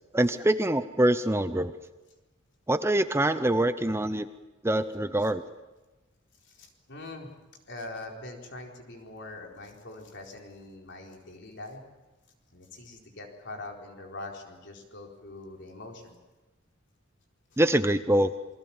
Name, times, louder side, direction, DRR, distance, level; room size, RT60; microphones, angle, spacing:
voice 1, 0.1-1.7 2.7-4.3 4.6-5.4 17.6-18.3, right 1 dB, 15° right, 11 dB, 0.7 m, -24 dB
voice 2, 6.4-7.3 7.7-11.8 12.5-16.2 17.5-17.6, left 2 dB, 60° left, 2 dB, 4.4 m, -43 dB
28.0 x 21.5 x 7.3 m, 1.1 s
head